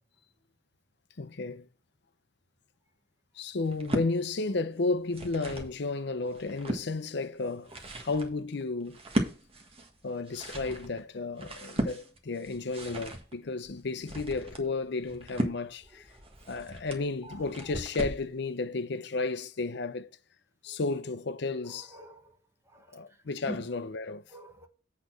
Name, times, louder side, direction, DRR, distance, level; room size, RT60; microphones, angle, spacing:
voice 1, 1.2-1.7 3.3-7.7 8.0-9.0 10.0-16.1 16.5-20.1 20.6-22.0 22.9-24.2, left 3 dB, 65° left, 0.6 m, -33 dB
sound 1, 3.6-4.1 4.9-5.8 6.2-6.9 7.4-18.3, right 1 dB, 30° right, 1.6 m, -36 dB
voice 2, 21.7-22.4 22.7-22.9 23.5-23.6 24.3-24.7, right 1 dB, 15° right, 1.2 m, -45 dB
8.5 x 4.1 x 6.2 m
head